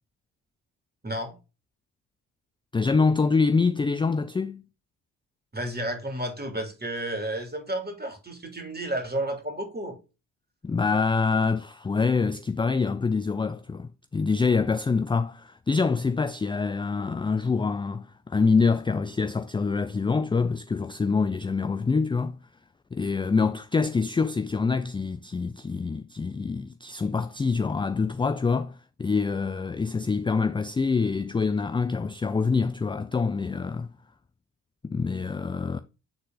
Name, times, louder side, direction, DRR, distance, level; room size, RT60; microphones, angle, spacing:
voice 1, 1.0-1.3 5.5-10.0, right 1 dB, 20° right, 2.8 m, -32 dB
voice 2, 2.7-4.6 10.6-22.4 22.9-33.9 34.8-35.8, left 4 dB, 10° left, 0.4 m, -25 dB
8.5 x 3.9 x 3.8 m
hypercardioid pair, 50°, 45 cm